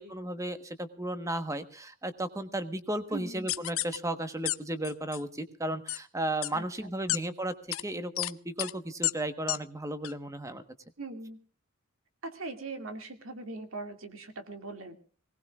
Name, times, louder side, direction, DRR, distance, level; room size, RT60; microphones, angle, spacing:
voice 1, 0.0-10.6, right 1 dB, 15° right, 9 dB, 1.2 m, -34 dB
voice 2, 3.1-3.5 6.5-6.6 11.0-11.4 12.2-15.0, right 3 dB, 75° right, 6 dB, 2.3 m, -40 dB
sound 1, 3.5-4.0 4.5-4.6 4.8-5.2 5.9-6.0 6.4-6.5 7.1-7.2 7.7-7.8 8.2-8.3 8.6-8.7 9.0-9.1 9.5-9.6 10.0-10.1, left 16 dB, 80° left, 0.6 m, -30 dB
23.5 x 19.0 x 2.4 m, 0.41 s
head